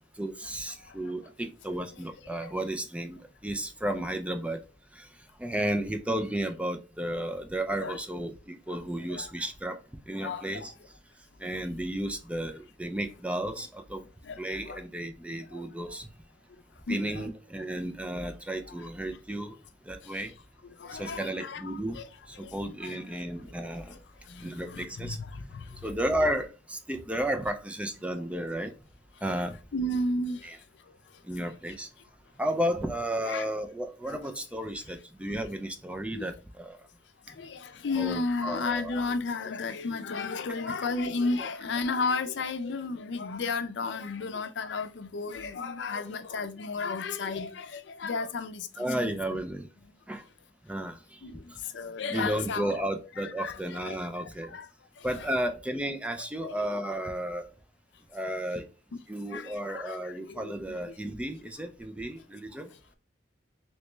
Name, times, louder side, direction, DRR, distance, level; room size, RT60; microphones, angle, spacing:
voice 1, 0.2-4.6 4.9-5.1 5.4-9.8 10.1-10.7 11.4-14.0 14.4-16.1 16.9-19.6 19.9-20.3 20.9-22.0 22.3-24.0 24.4-25.2 25.8-28.7 29.2-29.5 30.4-30.6 31.2-31.9 32.4-36.8 38.0-39.0 48.8-49.7 50.1-50.2 50.7-51.2 51.5-51.6 52.1-54.5 55.0-57.5 58.1-58.7 59.1-62.7, right 1 dB, 5° right, 0.3 m, -33 dB
voice 2, 10.2-10.7 14.2-14.8 15.5-16.0 16.9-17.3 20.0-20.3 20.6-21.6 21.9-22.1 22.3-23.3 23.9-24.0 24.3-25.8 29.7-30.5 33.2-33.5 34.1-34.2 36.1-36.3 37.3-49.4 51.2-52.8 53.2-54.7 55.0-55.3 56.4-56.8 59.3-60.8, left 3 dB, 70° left, 0.5 m, -34 dB
3.1 x 3.0 x 3.2 m
head